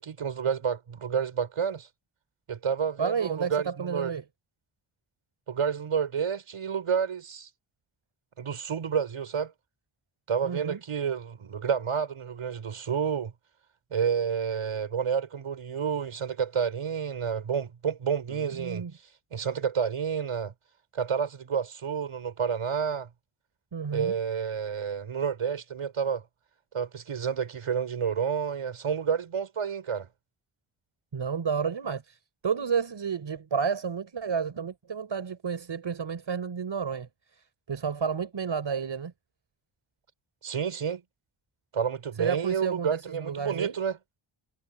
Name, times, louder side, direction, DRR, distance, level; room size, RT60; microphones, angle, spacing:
voice 1, 0.0-1.9 2.5-4.1 5.5-7.5 8.4-9.5 10.3-13.3 13.9-18.8 19.3-20.5 20.9-23.1 23.9-26.2 26.7-30.1 40.4-41.0 41.7-44.0, right 7 dB, 85° right, 6.2 m, -29 dB
voice 2, 3.0-4.2 10.4-10.8 18.3-18.9 23.7-24.2 31.1-39.1 42.2-43.8, right 6 dB, 60° right, 5.6 m, -31 dB
wide cardioid pair, 140°, 50 cm